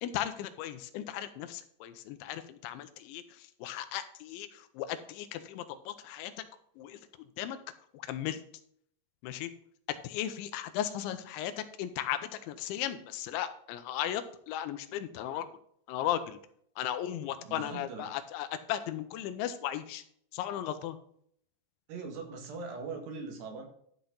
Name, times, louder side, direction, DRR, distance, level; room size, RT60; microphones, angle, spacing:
voice 1, 0.0-6.4 6.8-7.6 7.9-8.4 9.2-9.5 9.9-15.5 15.9-16.4 16.8-20.0 20.3-21.0, left 11 dB, 85° left, 10 dB, 3.1 m, -36 dB
voice 2, 17.4-18.1 21.9-23.7, right 4 dB, 65° right, 3 dB, 3.7 m, -41 dB
12.0 x 6.1 x 3.9 m, 0.65 s
omnidirectional pair, 5.3 m